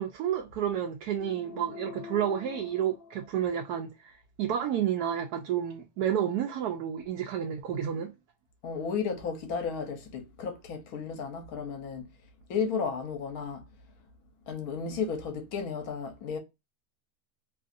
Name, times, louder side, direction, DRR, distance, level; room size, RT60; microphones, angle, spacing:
voice 1, 0.0-8.1, right 9 dB, 80° right, 1.1 m, -30 dB
Death Horn, 1.2-3.8, left 6 dB, 45° left, 0.9 m, -46 dB
voice 2, 8.6-12.0 12.5-13.6 14.5-16.4, left 6 dB, 75° left, 1.3 m, -33 dB
3.1 x 2.4 x 2.5 m
omnidirectional pair, 1.6 m